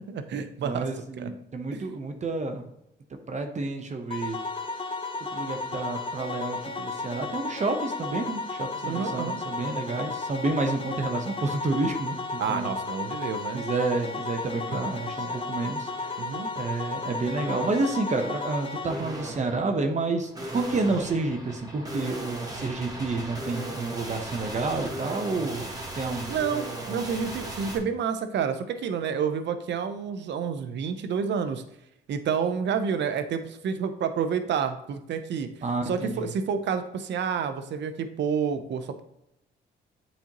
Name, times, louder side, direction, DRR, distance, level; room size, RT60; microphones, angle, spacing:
voice 1, 0.1-0.9 1.2-1.3 1.7-1.8 8.8-9.4 12.4-13.6 16.2-16.5 26.3-31.6 32.1-35.5 35.9-39.0, right 6 dB, 65° right, 9 dB, 0.7 m, -29 dB
voice 2, 0.6-2.6 3.3-4.4 5.3-12.7 13.5-16.2 16.6-26.4 35.6-36.2, right 3 dB, 35° right, 5 dB, 0.9 m, -30 dB
sound 1, 4.1-18.9, left 3 dB, 25° left, 0.8 m, -34 dB
sound 2, 14.0-14.2 14.6-15.4 15.9-16.3 17.4-18.0 18.9-27.8, right 1 dB, 20° right, 1.5 m, -37 dB
8.3 x 4.4 x 3.0 m, 0.85 s
cardioid pair, 90°, 20 cm